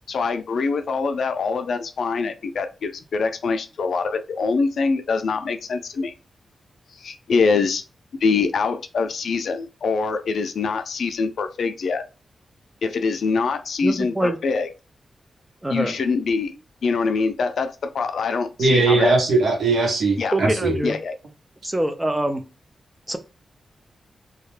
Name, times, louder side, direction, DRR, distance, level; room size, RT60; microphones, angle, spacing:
voice 1, 0.1-6.1 7.0-7.8 8.2-12.0 12.8-14.7 15.7-16.5 16.8-19.1 20.2-20.4 20.8-21.1, left 4 dB, 70° left, 0.4 m, -24 dB
voice 2, 13.8-14.4 15.6-16.0 20.3-21.0 21.6-22.4 23.1-23.2, right 1 dB, 10° right, 0.3 m, -24 dB
voice 3, 18.6-20.7, right 3 dB, 90° right, 0.8 m, -19 dB
2.3 x 2.1 x 3.1 m
wide cardioid pair, 130°, 0 cm